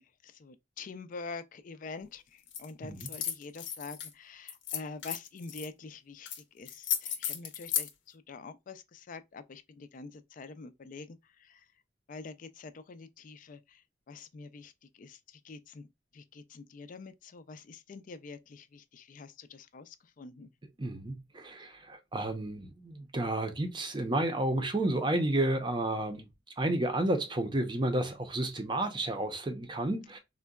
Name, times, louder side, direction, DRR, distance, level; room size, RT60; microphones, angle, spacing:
voice 1, 0.0-6.3 6.5-11.2 11.5-11.6 12.1-13.8 14.1-14.7 15.0-15.2 15.4-15.8 16.1-20.5, left 4 dB, 45° left, 0.4 m, -46 dB
sound 1, 2.5-2.7 3.0-4.1 4.5-5.7 6.2-6.4 6.6-7.9, left 9 dB, 80° left, 0.7 m, -34 dB
voice 2, 20.8-26.3 26.6-30.2, right 1 dB, 25° right, 0.6 m, -31 dB
3.7 x 2.2 x 2.2 m
head